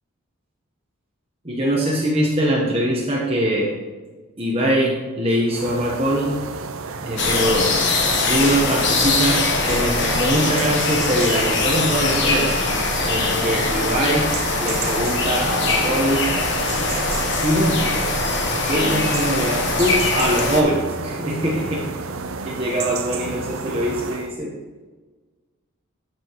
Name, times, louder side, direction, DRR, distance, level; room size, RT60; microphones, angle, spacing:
voice 1, 1.4-3.7 4.4-6.3 7.0-7.7 8.3-12.5 13.0-14.3 14.6-16.2 17.4-17.8 18.7-21.8 22.4-24.5, right 1 dB, 30° right, -3 dB, 1.1 m, -22 dB
sound 1, 5.5-24.3, right 5 dB, 80° right, 0.6 m, -32 dB
sound 2, 7.2-20.6, left 3 dB, 55° left, 1.2 m, -22 dB
12.5 x 6.1 x 3.1 m, 1.3 s
head